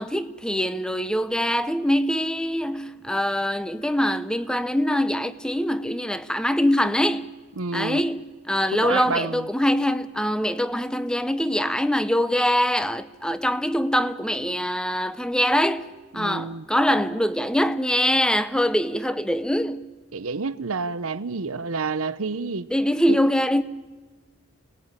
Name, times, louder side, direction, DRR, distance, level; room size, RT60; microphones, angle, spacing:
voice 1, 0.0-7.3 7.7-15.9 16.1-19.9 22.7-23.6, equal, 5° left, 0.7 m, -23 dB
voice 2, 7.6-8.0 8.7-9.5 16.2-16.6 20.1-22.7 23.1-23.2, right 4 dB, 85° right, 0.9 m, -29 dB
29.5 x 19.5 x 9.0 m
head